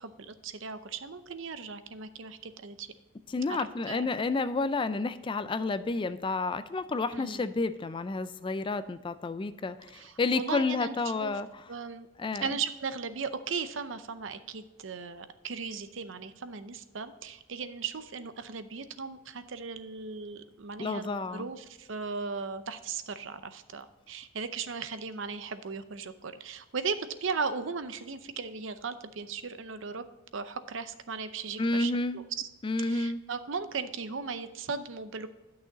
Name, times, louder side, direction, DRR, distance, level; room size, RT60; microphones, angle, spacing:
voice 1, 0.0-2.9 3.9-4.1 7.1-7.4 9.9-11.4 11.7-12.1 12.4-30.0 30.3-32.2 32.8-35.3, right 5 dB, 65° right, 11 dB, 0.6 m, -37 dB
voice 2, 3.3-11.6 12.2-12.5 20.8-21.5 31.6-32.2 32.6-33.2, left 3 dB, 25° left, 13 dB, 0.3 m, -30 dB
11.0 x 6.3 x 4.0 m, 1.1 s
head